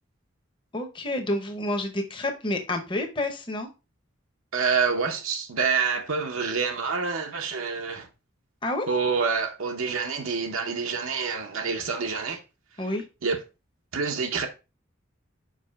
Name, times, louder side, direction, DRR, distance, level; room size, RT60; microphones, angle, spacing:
voice 1, 0.7-3.7 8.6-8.9 12.8-13.0, left 1 dB, 25° left, 0.7 m, -29 dB
voice 2, 4.5-8.1 8.9-12.4 13.2-13.4 13.9-14.5, right 5 dB, 85° right, 0.7 m, -27 dB
5.0 x 4.7 x 2.2 m
head